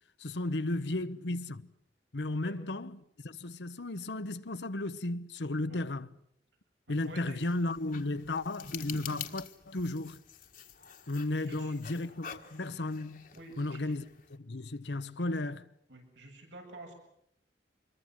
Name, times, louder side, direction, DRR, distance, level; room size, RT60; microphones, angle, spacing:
voice 1, 0.2-1.7 2.1-6.1 6.9-10.2 11.1-13.3 13.6-14.0 14.3-15.6, left 2 dB, 75° left, 1.0 m, -34 dB
sound 1, 6.9-14.4, left 7 dB, 50° left, 1.7 m, -47 dB
voice 2, 7.0-7.4 11.4-11.8 13.3-13.9 15.9-16.9, right 2 dB, 85° right, 7.9 m, -49 dB
26.0 x 22.5 x 7.6 m
head